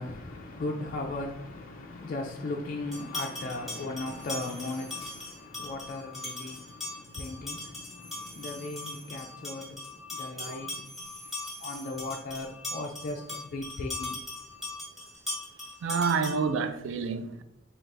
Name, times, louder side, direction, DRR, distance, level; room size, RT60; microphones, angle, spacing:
voice 1, 0.0-11.1 11.6-14.7, left 2 dB, 45° left, 0.3 m, -37 dB
sound 1, 2.9-16.6, left 2 dB, ahead, 0.8 m, -40 dB
sound 2, 4.2-5.4 8.0-9.2 10.8-12.1, equal, 50° right, 1.3 m, -50 dB
voice 2, 15.8-17.4, right 5 dB, 70° right, 0.3 m, -29 dB
3.8 x 2.4 x 3.3 m
head